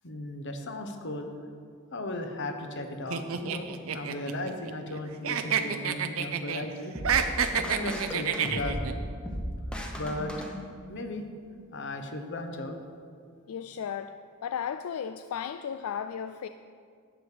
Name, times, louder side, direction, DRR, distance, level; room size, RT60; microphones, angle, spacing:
voice 1, 0.0-1.3 1.9-3.7 3.9-7.0 7.5-9.0 10.0-10.5 10.9-11.3 11.7-12.8, left 1 dB, 55° left, 5 dB, 1.1 m, -36 dB
sound 1, 3.1-5.0 5.2-6.6 7.0-8.9, right 7 dB, 75° right, 0.6 m, -29 dB
sound 2, 6.9-11.1, equal, 5° left, 0.9 m, -36 dB
voice 2, 13.5-14.1 14.4-16.5, left 8 dB, 80° left, 10 dB, 0.3 m, -34 dB
11.0 x 8.5 x 5.0 m, 2.2 s
head